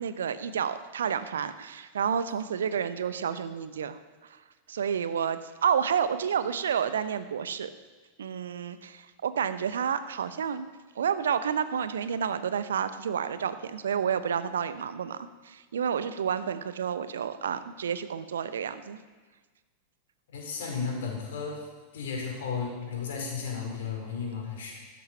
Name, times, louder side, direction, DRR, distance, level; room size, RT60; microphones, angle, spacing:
voice 1, 0.0-4.0 4.7-7.7 8.2-10.7 11.0-19.0, right 7 dB, 65° right, 13 dB, 0.8 m, -30 dB
voice 2, 20.3-21.6 21.9-24.7, left 5 dB, 60° left, 0 dB, 4.4 m, -34 dB
15.0 x 12.5 x 5.7 m, 1.3 s
figure-of-eight pair, 90°, 0 cm